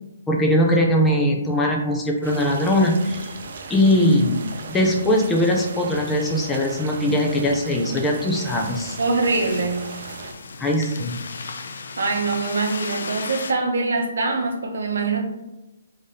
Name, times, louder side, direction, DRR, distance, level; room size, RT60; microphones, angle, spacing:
voice 1, 0.3-3.3 3.7-4.4 4.7-9.0 10.6-11.2, left 1 dB, 10° left, 0 dB, 0.4 m, -20 dB
sound 1, 2.2-10.3, right 3 dB, 55° right, 0.5 m, -37 dB
sound 2, 8.4-13.5, left 4 dB, 75° left, 0.4 m, -35 dB
voice 2, 9.0-9.9 12.0-15.2, right 3 dB, 85° right, 3 dB, 0.7 m, -23 dB
3.3 x 2.7 x 3.6 m, 1.0 s
hypercardioid pair, 170°, 0 cm